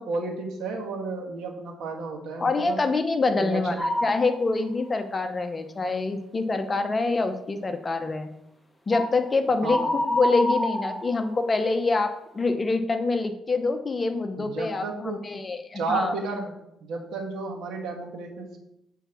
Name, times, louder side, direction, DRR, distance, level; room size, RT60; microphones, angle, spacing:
voice 1, 0.0-2.8 3.4-3.9 9.6-9.9 14.4-15.2 15.8-16.5 16.8-18.6, right 3 dB, 75° right, 2 dB, 1.7 m, -32 dB
voice 2, 2.4-8.3 8.9-9.8 10.1-16.1, left 3 dB, 30° left, 8 dB, 0.9 m, -26 dB
sound 1, 3.8-4.4 4.9-5.0 8.9-9.2 9.6-11.6, left 1 dB, 5° left, 1.3 m, -27 dB
8.0 x 4.6 x 5.9 m, 0.82 s
cardioid pair, 90°, 0 cm